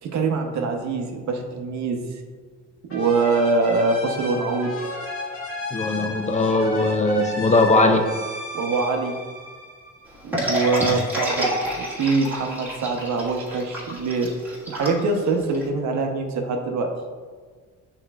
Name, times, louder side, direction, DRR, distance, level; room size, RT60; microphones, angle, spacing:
voice 1, 0.0-2.0 2.9-4.8 8.5-9.2 10.2-16.9, right 3 dB, 65° right, 3 dB, 0.8 m, -24 dB
sound 1, 2.9-10.3, left 1 dB, 45° left, 1.4 m, -33 dB
voice 2, 5.7-8.1, left 2 dB, 25° left, 4 dB, 0.4 m, -19 dB
sound 2, 10.3-15.6, equal, 5° right, 1.4 m, -28 dB
5.9 x 3.7 x 2.3 m, 1.5 s
cardioid pair, 90°, 30 cm